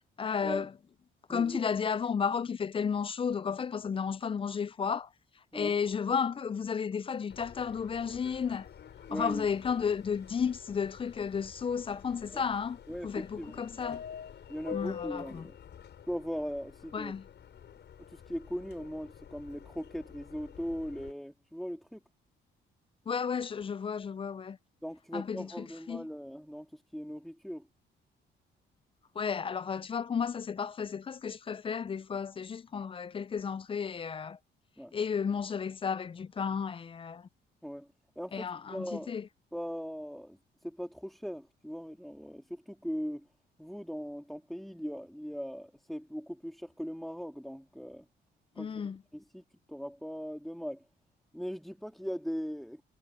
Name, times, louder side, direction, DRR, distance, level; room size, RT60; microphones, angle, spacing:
voice 1, 0.2-0.7 1.3-5.1 5.5-8.7 9.1-14.0 14.7-15.5 16.9-17.3 23.1-24.6 25.1-26.1 29.2-34.4 34.9-37.3 38.3-39.3 48.6-49.0, left 6 dB, 25° left, 0.4 m, -33 dB
voice 2, 1.3-1.6 5.5-5.7 9.1-9.5 12.3-12.4 12.9-13.5 14.5-15.6 16.1-17.1 18.1-22.0 24.8-27.7 34.8-34.9 37.6-37.9 38.2-39.2 39.5-43.3 43.6-48.0 48.6-48.8 49.1-49.4 49.7-50.8 51.3-52.8, equal, ahead, 2.4 m, -39 dB
Subway metro underground, 7.3-21.1, left 8 dB, 60° left, 6.5 m, -47 dB
cardioid pair, 90°, 20 cm